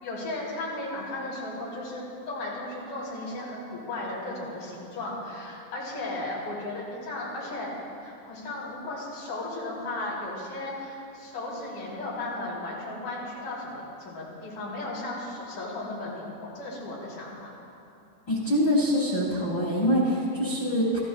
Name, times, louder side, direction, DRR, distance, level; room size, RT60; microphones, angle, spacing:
voice 1, 0.0-7.7 8.0-17.5, left 2 dB, 45° left, -6 dB, 4.6 m, -35 dB
voice 2, 18.3-21.0, equal, 65° left, -6 dB, 1.0 m, -24 dB
23.0 x 14.0 x 2.3 m, 2.7 s
omnidirectional pair, 5.2 m